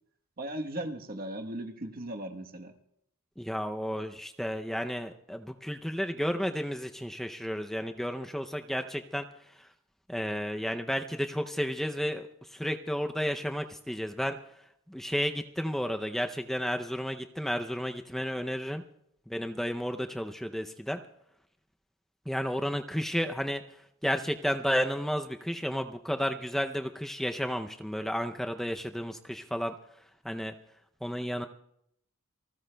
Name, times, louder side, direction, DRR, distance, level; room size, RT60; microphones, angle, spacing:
voice 1, 0.4-2.7, right 1 dB, 45° right, 4 dB, 1.1 m, -37 dB
voice 2, 3.4-9.7 10.1-14.4 14.9-18.8 19.3-21.0 22.3-23.6 24.0-29.7 30.2-30.5 31.0-31.5, equal, ahead, 5 dB, 0.5 m, -32 dB
28.0 x 19.5 x 2.2 m, 0.74 s
head